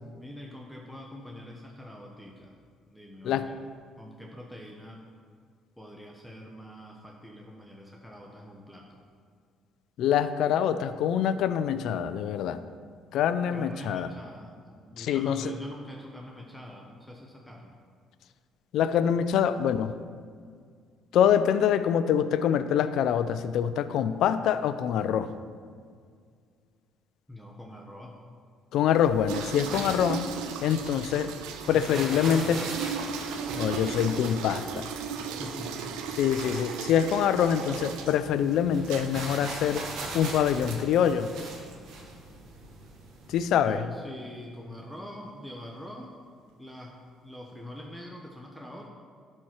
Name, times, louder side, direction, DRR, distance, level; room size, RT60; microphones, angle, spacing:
voice 1, 0.1-2.6 2.9-3.6 4.0-5.0 5.8-9.0 13.5-17.8 27.3-28.2 29.6-30.0 31.6-32.9 35.2-36.2 43.6-46.1 46.6-46.9 47.2-48.9, left 1 dB, 5° left, -1 dB, 1.1 m, -44 dB
voice 2, 10.0-12.6 13.1-14.1 15.0-15.5 18.7-19.9 21.1-25.3 28.7-30.3 30.6-31.3 31.7-32.6 33.6-34.9 36.2-39.9 40.1-41.3 43.3-43.8, left 9 dB, 75° left, 12 dB, 0.4 m, -25 dB
sound 1, 28.9-43.5, right 2 dB, 70° right, 1.5 m, -41 dB
sound 2, 29.3-38.2 38.8-39.1 39.7-39.9 40.6-40.8 41.6-41.8, right 6 dB, 85° right, 0.6 m, -36 dB
11.5 x 4.4 x 4.6 m, 2.1 s
supercardioid pair, 70°, 0 cm